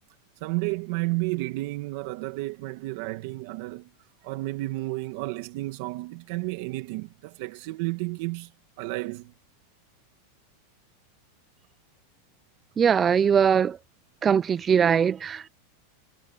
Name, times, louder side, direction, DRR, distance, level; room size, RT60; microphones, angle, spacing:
voice 1, 0.4-3.9 4.2-8.5 8.8-9.3, right 21 dB, 55° right, 1.8 m, -32 dB
voice 2, 12.8-13.8 14.2-15.5, right 7 dB, 20° right, 0.6 m, -21 dB
supercardioid pair, 160°, 0 cm